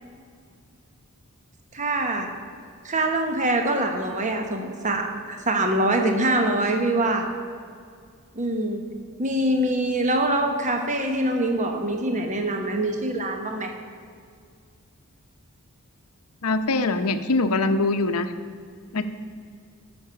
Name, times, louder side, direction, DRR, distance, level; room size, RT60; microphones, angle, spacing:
voice 1, 1.7-2.3 2.8-7.3 8.3-8.8 9.2-13.7, right 1 dB, 35° right, 4 dB, 1.1 m, -24 dB
voice 2, 16.4-18.3 18.9-19.0, left 3 dB, 70° left, 9 dB, 0.7 m, -23 dB
13.5 x 6.2 x 6.8 m, 2.2 s
head